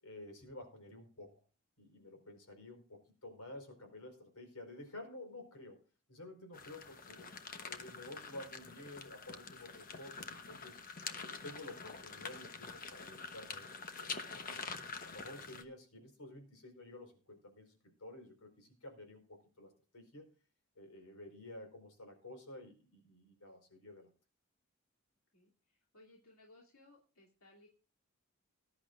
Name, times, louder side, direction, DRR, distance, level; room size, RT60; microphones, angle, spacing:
voice 1, 0.0-1.4 1.8-5.8 6.1-7.3 7.6-10.8 11.2-13.7 14.0-14.6 15.0-20.3 20.8-24.1, left 1 dB, 90° left, 5 dB, 4.7 m, -52 dB
sound 1, 6.5-15.6, left 5 dB, 40° left, 1.0 m, -46 dB
voice 2, 25.3-27.7, left 2 dB, 70° left, -2 dB, 2.7 m, -63 dB
20.0 x 11.0 x 2.5 m, 0.36 s
head